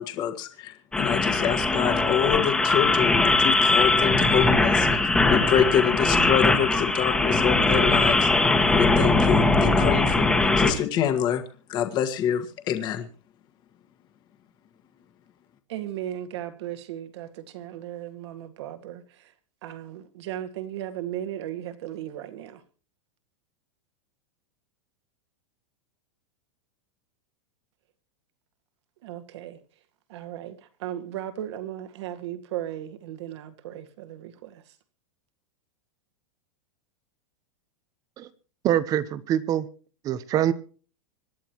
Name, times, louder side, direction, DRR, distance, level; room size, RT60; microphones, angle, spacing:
voice 1, 0.0-10.3 10.6-11.4 11.7-13.0, left 9 dB, 25° left, 1.6 m, -26 dB
sound 1, 0.9-10.7, left 2 dB, 5° left, 1.5 m, -21 dB
voice 2, 15.7-19.0 19.6-22.6 29.0-29.6 30.1-30.6 30.8-34.6, right 12 dB, 60° right, 2.0 m, -36 dB
voice 3, 38.6-39.7 40.0-40.5, right 11 dB, 20° right, 0.8 m, -24 dB
26.0 x 11.0 x 3.0 m
supercardioid pair, 170°, 16 cm